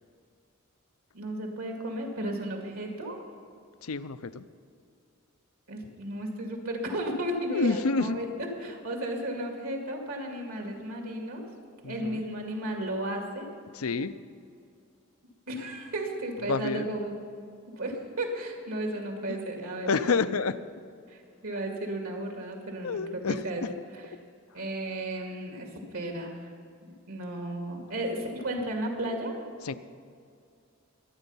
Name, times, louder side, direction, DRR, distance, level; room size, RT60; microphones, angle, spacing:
voice 1, 1.1-3.2 5.7-8.3 8.6-11.4 11.8-13.5 15.5-17.2 17.7-20.3 21.1-23.6 23.9-24.1 24.5-26.5 26.8-29.4, right 1 dB, 80° right, 2 dB, 2.2 m, -34 dB
voice 2, 3.8-4.4 7.5-8.2 8.6-8.7 11.8-12.2 13.7-14.1 16.4-16.9 19.9-20.6 22.8-23.7 29.6-29.7, left 4 dB, 85° left, 13 dB, 0.6 m, -28 dB
23.0 x 8.9 x 5.6 m, 2.3 s
head